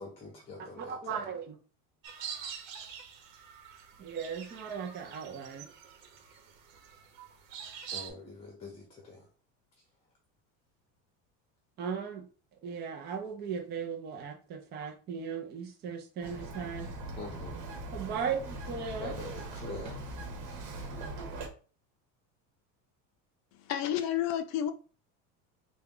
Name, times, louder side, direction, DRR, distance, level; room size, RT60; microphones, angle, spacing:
voice 1, 0.0-1.3 7.9-9.3 17.2-17.7 19.0-20.2, left 3 dB, 15° left, 0.8 m, -44 dB
voice 2, 0.8-1.6 4.0-5.7 11.8-12.3 12.6-16.9 17.9-19.1, right 6 dB, 30° right, 0.6 m, -37 dB
sound 1, 2.0-8.1, right 8 dB, 80° right, 1.0 m, -45 dB
Bird vocalization bird call bird song, 16.2-21.5, right 2 dB, 55° right, 1.5 m, -41 dB
voice 3, 23.6-24.7, left 10 dB, 50° left, 0.6 m, -30 dB
4.0 x 2.3 x 3.7 m
cardioid pair, 165°, 36 cm